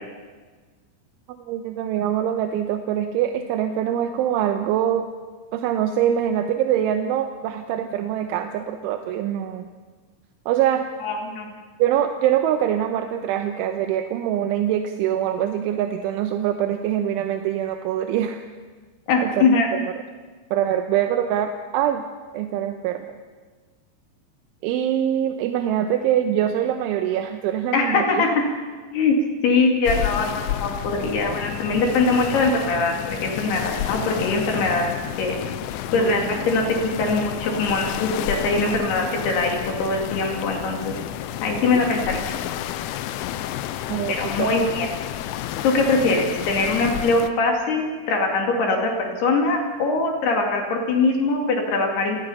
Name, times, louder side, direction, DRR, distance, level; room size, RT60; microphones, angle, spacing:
voice 1, 1.4-5.1 5.5-9.7 10.5-10.8 11.8-18.4 19.2-19.5 20.5-22.0 22.3-23.1 24.6-28.3 35.9-36.4 43.9-44.5, right 10 dB, 85° right, 6 dB, 3.3 m, -24 dB
voice 2, 11.0-11.5 19.1-19.7 27.7-28.3 28.9-29.2 29.4-35.4 35.9-36.6 37.0-40.9 41.4-42.2 44.1-44.9 45.6-52.2, left 3 dB, 60° left, 1 dB, 4.3 m, -22 dB
sound 1, 29.9-47.3, left 12 dB, 80° left, 3.2 m, -30 dB
29.5 x 18.5 x 5.7 m, 1.4 s
omnidirectional pair, 5.5 m